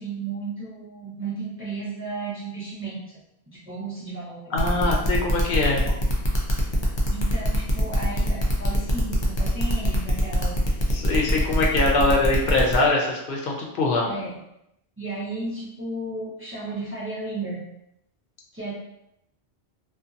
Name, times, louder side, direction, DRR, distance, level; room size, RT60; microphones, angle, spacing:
voice 1, 0.0-3.0 3.5-4.9 7.1-10.7 11.5-11.6 14.0-14.4 15.0-17.6 18.5-18.7, right 3 dB, 15° right, -10 dB, 0.8 m, -34 dB
voice 2, 4.5-5.8 10.9-14.1, left 2 dB, 60° left, -1 dB, 0.8 m, -23 dB
sound 1, 4.6-12.7, equal, 40° left, 0.4 m, -25 dB
2.7 x 2.5 x 2.5 m, 0.83 s
omnidirectional pair, 1.0 m